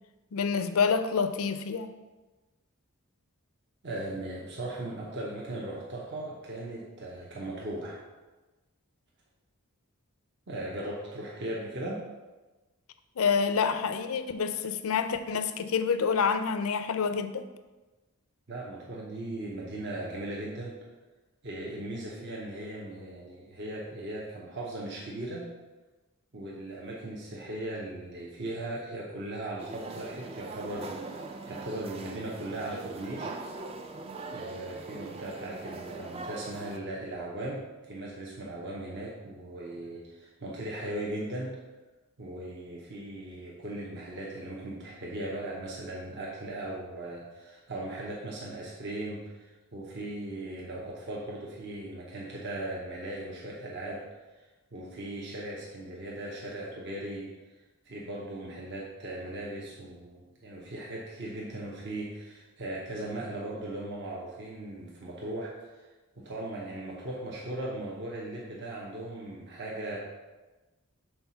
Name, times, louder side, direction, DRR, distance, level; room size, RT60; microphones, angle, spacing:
voice 1, 0.3-1.9 13.2-17.5, left 6 dB, 75° left, 10 dB, 0.4 m, -27 dB
voice 2, 3.8-8.0 10.5-12.0 18.5-20.8 21.4-25.4 26.3-33.3 34.2-41.6 42.2-54.0 54.7-57.3 57.8-65.9 66.2-70.0, right 1 dB, 50° right, -4 dB, 0.8 m, -38 dB
sound 1, 29.6-36.8, right 3 dB, 25° right, 0.3 m, -41 dB
4.5 x 3.9 x 5.6 m, 1.2 s
head